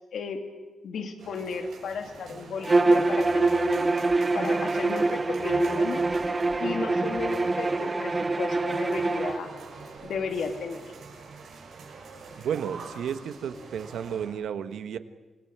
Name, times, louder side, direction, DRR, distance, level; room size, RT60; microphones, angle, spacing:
voice 1, 0.1-0.4 0.8-3.8 4.3-6.0 6.6-9.5 10.0-10.8, left 5 dB, 65° left, 5 dB, 2.6 m, -34 dB
sound 1, 1.2-14.3, right 4 dB, 60° right, 6.8 m, -45 dB
Bowed string instrument, 2.6-9.4, right 2 dB, 20° right, 0.9 m, -24 dB
voice 2, 12.4-15.0, right 8 dB, 90° right, 11 dB, 1.3 m, -32 dB
27.5 x 19.5 x 8.8 m, 1.2 s
wide cardioid pair, 180°, 0 cm